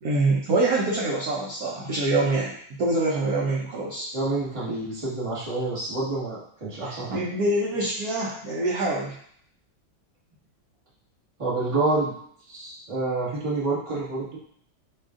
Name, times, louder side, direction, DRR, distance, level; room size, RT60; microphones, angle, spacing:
voice 1, 0.0-4.1 6.8-9.2, right 2 dB, 65° right, -4 dB, 1.0 m, -25 dB
voice 2, 4.1-7.2 11.4-12.1 12.5-14.4, right 2 dB, 20° right, -7 dB, 1.1 m, -28 dB
5.1 x 2.4 x 3.6 m, 0.64 s
omnidirectional pair, 2.1 m